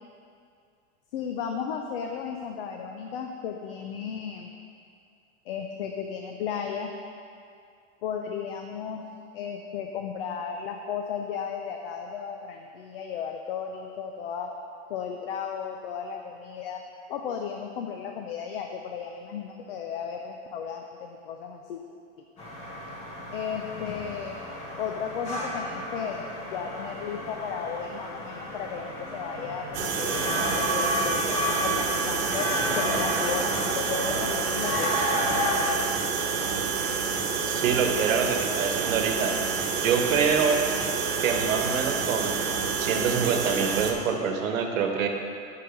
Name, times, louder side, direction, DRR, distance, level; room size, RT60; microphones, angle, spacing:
voice 1, 1.1-4.5 5.5-6.9 8.0-9.0 9.3-14.5 14.9-16.8 17.1-21.8 23.3-24.4 24.8-30.2 30.7-32.5 32.8-35.1, left 7 dB, 45° left, 3 dB, 0.5 m, -34 dB
sound 1, 22.4-35.7, equal, 15° left, 0.9 m, -31 dB
sound 2, 29.7-43.9, right 5 dB, 55° right, 1.1 m, -28 dB
voice 2, 37.5-39.3 39.8-40.6 41.2-42.4 42.8-45.1, right 6 dB, 90° right, 4 dB, 1.2 m, -25 dB
8.5 x 4.8 x 6.1 m, 2.4 s
supercardioid pair, 175°, 39 cm